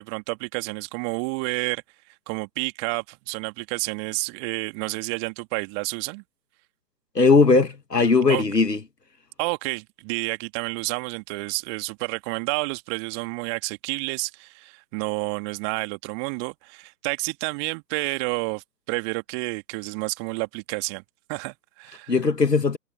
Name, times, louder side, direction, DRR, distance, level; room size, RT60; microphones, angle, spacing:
voice 1, 0.0-1.8 2.3-6.2 8.3-8.4 9.4-21.0 21.3-22.1, right 39 dB, 15° right, 2.3 m, -30 dB
voice 2, 7.2-8.8 22.1-22.8, left 4 dB, 75° left, 2.0 m, -18 dB
figure-of-eight pair, 140°, 49 cm